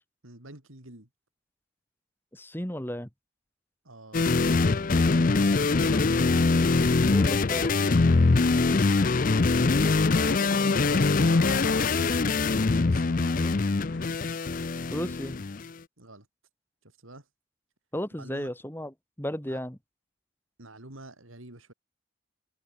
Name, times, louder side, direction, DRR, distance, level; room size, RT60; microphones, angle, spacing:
voice 1, 0.2-1.1 3.8-4.4 5.1-6.1 8.4-9.0 10.3-10.6 11.9-12.4 12.9-13.4 16.0-16.3 17.0-17.2 18.2-18.5 19.4-19.6 20.6-21.7, right 2 dB, 90° right, 5.0 m, -46 dB
voice 2, 2.3-3.1 7.1-7.7 10.6-10.8 13.4-13.5 14.9-15.4 17.9-19.8, equal, 10° left, 2.1 m, -34 dB
sound 1, 4.1-15.7, left 3 dB, 40° left, 0.5 m, -23 dB
sound 2, 7.1-8.6 9.9-12.5 13.0-14.1, left 3 dB, 65° left, 1.2 m, -38 dB
head